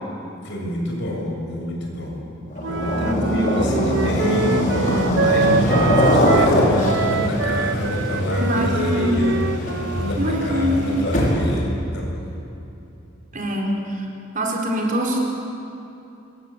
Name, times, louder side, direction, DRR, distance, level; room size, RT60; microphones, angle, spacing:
voice 1, 0.4-2.3 2.7-11.7 11.9-12.2 13.3-13.4, left 1 dB, 65° left, -1 dB, 7.2 m, -27 dB
sound 1, 2.5-11.6, equal, 45° left, 6.0 m, -22 dB
Wind instrument woodwind instrument, 2.6-6.6 6.8-10.8, right 4 dB, 65° right, 0.9 m, -26 dB
voice 2, 3.0-3.4 8.4-9.3 10.2-10.9 13.3-14.0 14.3-15.2, equal, 45° right, 0 dB, 4.9 m, -23 dB
26.5 x 23.5 x 8.5 m, 2.8 s
head